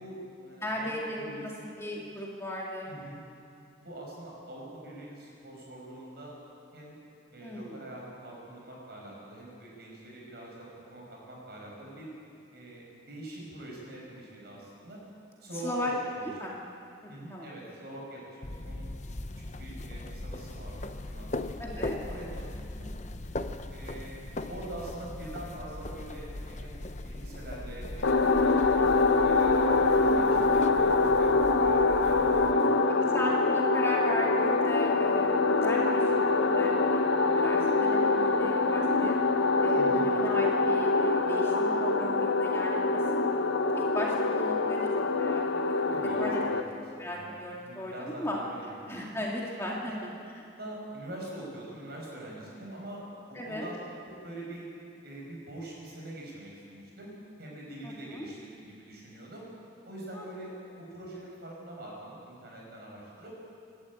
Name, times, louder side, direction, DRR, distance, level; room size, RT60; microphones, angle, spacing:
voice 1, 0.0-1.7 2.9-3.2 3.8-6.3 6.7-7.0 7.3-12.1 12.5-15.0 15.4-16.3 17.1-18.9 19.6-22.9 23.7-24.2 24.5-26.8 27.0-28.2 28.6-31.3 31.6-33.2 34.1-34.3 39.7-40.1 45.9-46.2 46.5-46.6 46.9-49.0 49.9-50.0 50.5-53.0 53.3-53.8 54.0-54.6 55.0-59.5 59.8-63.3, right 1 dB, 50° right, -3 dB, 6.6 m, -44 dB
voice 2, 0.6-1.5 1.8-2.9 7.4-7.8 15.6-15.9 16.2-16.5 17.0-17.5 21.6-22.0 30.1-30.5 33.1-37.0 37.3-39.2 39.6-43.2 43.6-44.9 45.2-45.4 45.7-46.4 47.0-48.4 48.9-50.1 53.3-53.7 57.8-58.3 60.1-60.3, left 1 dB, 15° left, -3 dB, 2.3 m, -36 dB
sound 1, 18.4-32.5, left 1 dB, 35° left, 0.8 m, -39 dB
sound 2, 28.0-46.6, left 3 dB, 80° left, 1.0 m, -25 dB
27.0 x 12.5 x 8.9 m, 2.6 s
head